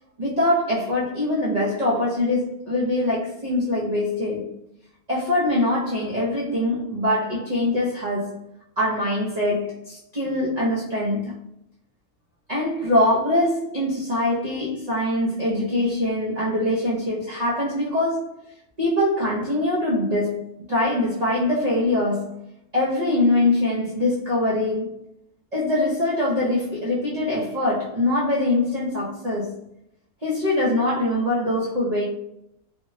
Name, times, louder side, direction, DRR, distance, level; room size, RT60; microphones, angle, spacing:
voice 1, 0.2-4.6 5.1-8.4 8.8-11.4 12.5-18.4 18.8-22.4 22.7-24.9 25.5-29.7 30.2-32.0, left 1 dB, 90° right, 0.3 m, -23 dB
3.3 x 2.0 x 2.6 m
omnidirectional pair, 1.6 m